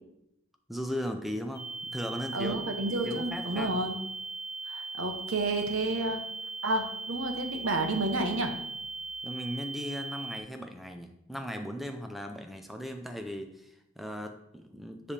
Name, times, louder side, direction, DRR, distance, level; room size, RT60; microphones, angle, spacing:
voice 1, 0.7-3.8 9.2-15.1, equal, ahead, 5 dB, 0.4 m, -38 dB
sound 1, 1.5-10.4, right 3 dB, 50° left, 1.3 m, -39 dB
voice 2, 2.3-3.9 4.7-6.2 6.6-8.5, right 2 dB, 70° right, 4 dB, 1.0 m, -30 dB
9.8 x 3.3 x 3.3 m, 0.82 s
head